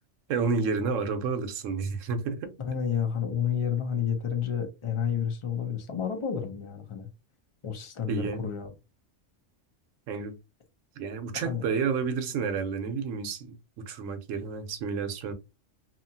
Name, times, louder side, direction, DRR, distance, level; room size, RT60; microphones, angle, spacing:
voice 1, 0.3-2.5 8.1-8.4 10.1-10.4 11.0-15.3, right 5 dB, 75° right, 1.0 m, -30 dB
voice 2, 2.6-7.1 7.6-8.7 11.3-11.7, left 8 dB, 35° left, 0.5 m, -30 dB
2.8 x 2.4 x 2.7 m
omnidirectional pair, 1.3 m